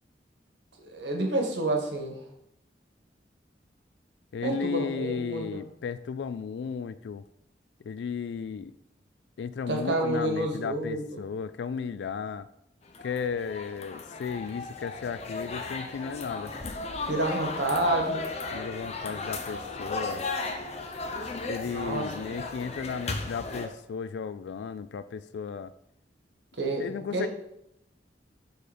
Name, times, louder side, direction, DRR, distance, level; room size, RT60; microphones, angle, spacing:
voice 1, 0.8-2.2 4.4-5.6 9.7-11.2 17.1-18.2 21.6-22.4 26.6-27.3, right 2 dB, 90° right, 2 dB, 1.4 m, -29 dB
voice 2, 4.3-7.2 7.8-8.7 9.4-12.5 13.0-16.5 18.5-20.2 21.5-25.7 26.8-27.3, left 6 dB, 80° left, 15 dB, 0.3 m, -34 dB
sound 1, 12.9-23.7, left 3 dB, 40° left, 0.7 m, -35 dB
6.5 x 3.9 x 5.0 m, 0.80 s
head